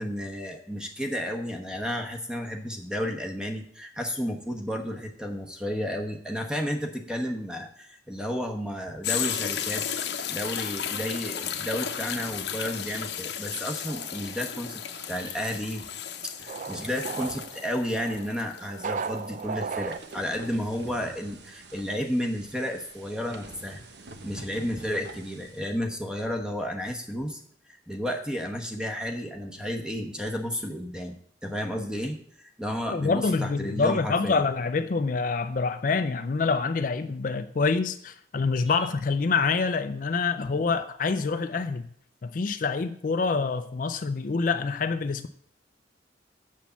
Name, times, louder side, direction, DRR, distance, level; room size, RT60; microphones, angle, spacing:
voice 1, 0.0-15.9 16.2-23.8 24.2-27.4 27.7-31.2 31.4-34.4, equal, 5° right, 1.0 m, -32 dB
sound 1, 9.0-19.6 20.1-20.2, left 8 dB, 65° left, 0.8 m, -34 dB
sound 2, 13.9-20.0, right 5 dB, 40° right, 0.3 m, -37 dB
sound 3, 19.9-25.8, right 2 dB, 65° right, 1.0 m, -46 dB
voice 2, 32.9-41.9 42.2-45.3, left 4 dB, 45° left, 0.4 m, -26 dB
7.2 x 6.2 x 7.0 m
head